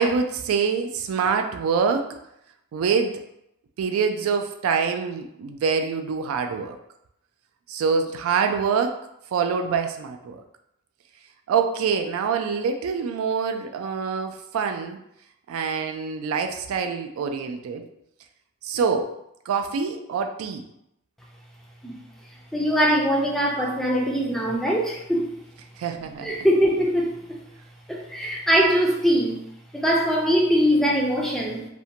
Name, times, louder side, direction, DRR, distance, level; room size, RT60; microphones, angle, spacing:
voice 1, 0.0-2.2 2.7-3.2 3.8-6.8 7.7-9.0 9.3-10.4 11.5-15.0 15.5-17.9 18.6-19.2 19.5-20.6 25.8-26.3, right 5 dB, 80° right, 6 dB, 0.3 m, -25 dB
voice 2, 22.5-25.3 26.2-27.4 27.9-29.4 29.7-31.6, equal, ahead, -2 dB, 0.3 m, -22 dB
2.5 x 2.1 x 2.7 m, 0.78 s
head